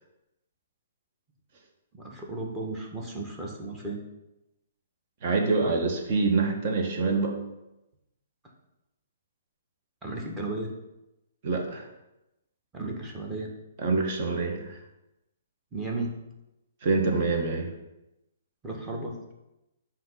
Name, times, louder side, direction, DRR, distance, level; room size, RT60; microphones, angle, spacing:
voice 1, 1.9-4.0 10.0-10.7 12.7-13.5 15.7-16.1 18.6-19.2, right 2 dB, 15° right, -1 dB, 1.4 m, -34 dB
voice 2, 5.2-7.4 11.4-11.9 13.8-14.8 16.8-17.7, right 3 dB, 45° right, 2 dB, 1.3 m, -26 dB
7.6 x 3.0 x 5.8 m, 0.93 s
figure-of-eight pair, 120°, 0 cm